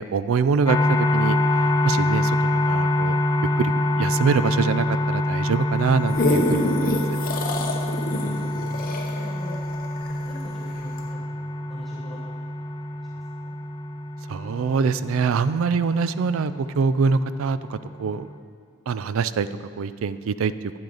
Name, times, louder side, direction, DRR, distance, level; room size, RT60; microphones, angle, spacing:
voice 1, 0.0-1.4 1.8-2.4 2.7-3.2 3.6-7.0 14.3-18.3 18.9-19.5 19.8-20.5, right 5 dB, 70° right, 14 dB, 0.4 m, -24 dB
sound 1, 0.7-18.4, left 1 dB, 20° left, 0.4 m, -26 dB
sound 2, 5.8-10.5 11.0-11.1, left 1 dB, 45° left, 0.8 m, -26 dB
voice 2, 8.1-9.6 10.0-12.4 12.7-12.8 13.1-13.6, equal, ahead, -8 dB, 1.1 m, -43 dB
12.0 x 8.9 x 3.9 m, 2.2 s
head